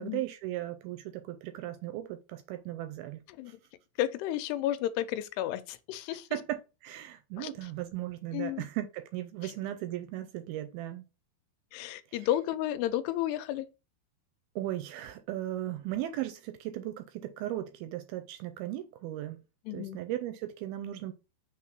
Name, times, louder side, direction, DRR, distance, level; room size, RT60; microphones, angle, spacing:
voice 1, 0.0-3.2 3.5-3.6 6.3-11.0 12.1-12.3 14.6-19.4 19.7-21.1, right 14 dB, 80° right, 2.3 m, -37 dB
voice 2, 3.3-3.6 4.0-6.3 7.4-7.5 8.3-8.6 9.4-9.5 11.7-13.7 19.7-20.0, left 13 dB, 85° left, 2.7 m, -32 dB
6.3 x 3.6 x 5.8 m
omnidirectional pair, 4.8 m